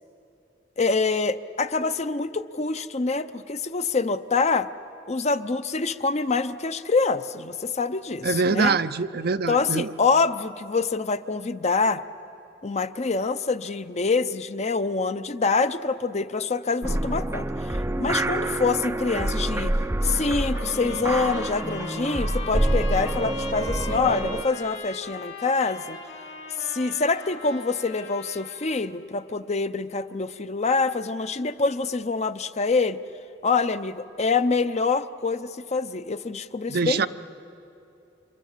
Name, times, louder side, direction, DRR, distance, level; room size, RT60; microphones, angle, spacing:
voice 1, 0.8-4.7 5.1-8.8 9.5-12.0 12.6-19.8 20.0-26.0 26.6-33.0 33.4-37.1, left 4 dB, 35° left, 11 dB, 0.7 m, -25 dB
voice 2, 8.2-9.9 36.7-37.1, right 4 dB, 55° right, 12 dB, 0.6 m, -24 dB
sound 1, 16.8-24.4, right 1 dB, 15° right, 0.5 m, -27 dB
Trumpet, 20.0-28.9, left 4 dB, 80° left, 3.8 m, -40 dB
29.0 x 26.5 x 7.4 m, 2.7 s
head